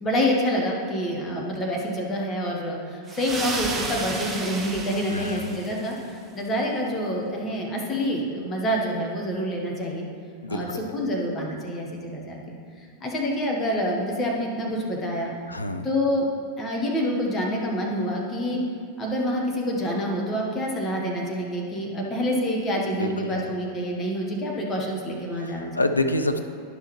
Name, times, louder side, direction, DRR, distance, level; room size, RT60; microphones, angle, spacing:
voice 1, 0.0-10.0 10.5-15.3 15.8-16.3 16.6-18.6 19.0-25.7, equal, 20° left, -2 dB, 1.4 m, -27 dB
sound 1, 3.1-6.1, right 3 dB, 20° right, 0.8 m, -33 dB
voice 2, 5.1-5.6 10.4-10.9 15.5-15.9 22.9-23.5 25.3-26.4, left 1 dB, 80° left, 7 dB, 0.4 m, -28 dB
10.5 x 5.8 x 3.1 m, 2.3 s
figure-of-eight pair, 90°, 0 cm